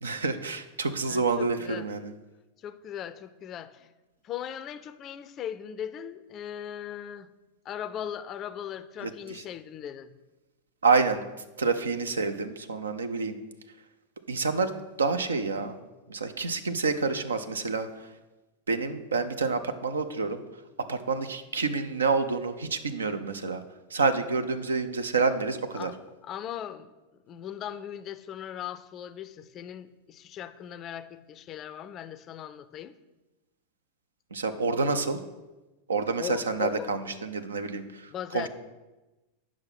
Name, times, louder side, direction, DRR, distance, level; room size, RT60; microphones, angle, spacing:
voice 1, 0.0-2.1 9.0-9.4 10.8-11.2 11.6-13.4 14.3-14.7 15.0-15.8 16.1-17.9 18.7-20.4 20.9-23.6 23.9-25.9 34.3-35.2 35.9-38.1 38.3-38.5, right 4 dB, 70° right, 9 dB, 0.6 m, -28 dB
voice 2, 1.0-1.9 2.6-3.9 4.2-7.3 7.6-10.1 25.7-26.9 27.2-32.9 36.2-36.9 38.1-38.5, left 10 dB, 30° left, 14 dB, 0.4 m, -38 dB
8.6 x 6.0 x 5.9 m, 1.1 s
figure-of-eight pair, 90°, 0 cm